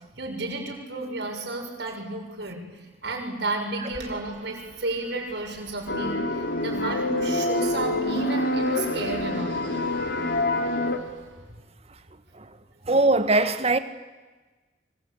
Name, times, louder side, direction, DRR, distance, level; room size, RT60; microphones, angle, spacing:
voice 1, 0.2-2.6 3.0-9.6, right 2 dB, 65° right, 6.7 m, -32 dB
Fixed-wing aircraft airplane, 3.9-11.7, right 2 dB, 85° right, 3.9 m, -46 dB
sound 1, 5.9-11.0, left 2 dB, 60° left, 2.8 m, -26 dB
voice 2, 12.9-13.8, right 2 dB, 35° right, 1.7 m, -20 dB
26.5 x 25.0 x 8.8 m
head